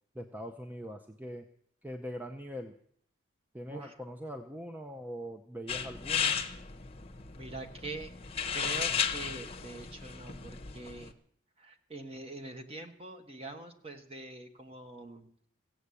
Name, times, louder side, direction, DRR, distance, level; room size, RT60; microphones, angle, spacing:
voice 1, 0.1-1.5 1.8-2.7 3.5-6.4, equal, 10° right, 5 dB, 0.6 m, -42 dB
sound 1, 5.7-11.1, left 7 dB, 30° left, 0.9 m, -35 dB
voice 2, 7.4-8.1 8.5-11.1 11.6-15.3, right 2 dB, 30° right, 5 dB, 1.3 m, -44 dB
16.0 x 7.6 x 8.3 m, 0.66 s
head